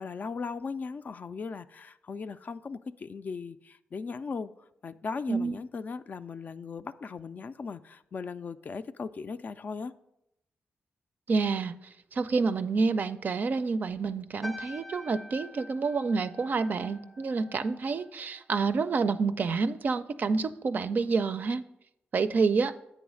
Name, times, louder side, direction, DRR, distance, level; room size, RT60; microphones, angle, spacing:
voice 1, 0.0-4.5 4.8-9.9, left 5 dB, 50° left, 0.3 m, -38 dB
voice 2, 11.3-11.7 12.1-21.6 22.1-22.7, right 4 dB, 50° right, 0.4 m, -28 dB
sound 1, 14.4-19.0 19.3-19.7, left 1 dB, ahead, 0.6 m, -46 dB
8.5 x 3.1 x 6.2 m
cardioid pair, 70°, 4 cm